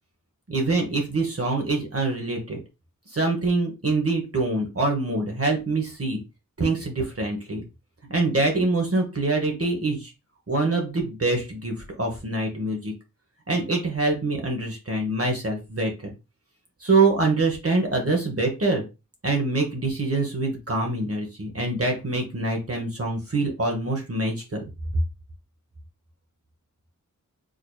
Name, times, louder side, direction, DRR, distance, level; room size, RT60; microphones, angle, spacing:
voice 1, 0.5-2.6 3.1-6.2 6.6-7.6 8.1-10.1 10.5-12.9 13.5-16.1 16.8-18.8 19.2-24.6, right 2 dB, 45° right, 1 dB, 1.1 m, -25 dB
4.9 x 2.8 x 2.3 m, 0.27 s
wide cardioid pair, 45°, 33 cm